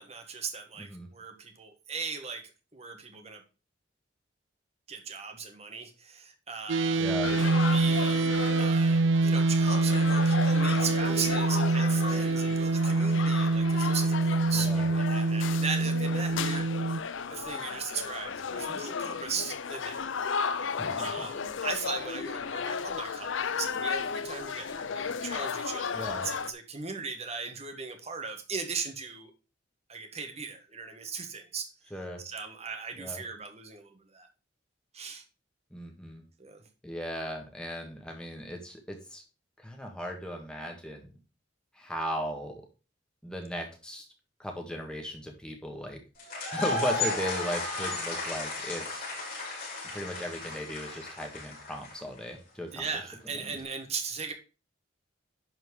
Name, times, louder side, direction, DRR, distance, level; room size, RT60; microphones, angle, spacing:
voice 1, 0.0-3.4 4.9-8.3 8.6-16.7 17.3-20.0 21.0-29.3 29.9-31.7 32.2-34.3 34.9-35.2 36.4-36.6 52.7-54.3, right 5 dB, 30° right, 5 dB, 1.5 m, -38 dB
voice 2, 0.8-1.1 7.0-7.3 14.5-14.9 20.8-21.3 25.9-26.3 31.9-32.2 33.0-33.2 35.7-36.2 36.8-39.2 39.6-41.1 41.7-42.6 43.2-44.0 44.4-46.0 46.5-48.8 49.9-52.9 53.4-53.6, equal, 5° left, 2 dB, 1.7 m, -37 dB
sound 1, 6.7-17.0, right 3 dB, 70° right, 0.4 m, -25 dB
sound 2, 7.2-26.5, left 6 dB, 80° left, 0.6 m, -35 dB
sound 3, 46.2-52.2, left 2 dB, 45° left, 5.1 m, -34 dB
11.0 x 4.4 x 4.8 m, 0.32 s
head